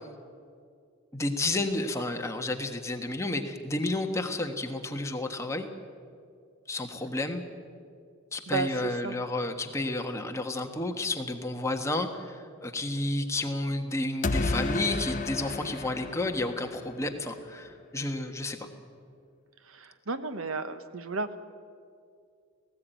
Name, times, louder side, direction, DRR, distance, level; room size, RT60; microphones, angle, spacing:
voice 1, 1.1-5.7 6.7-7.4 8.3-18.6, left 2 dB, 15° left, 4 dB, 1.4 m, -31 dB
voice 2, 8.5-9.2 19.7-21.4, right 4 dB, 80° right, 11 dB, 1.1 m, -33 dB
sound 1, 14.2-17.1, left 2 dB, 40° left, 0.7 m, -31 dB
18.5 x 16.0 x 9.1 m, 2.3 s
head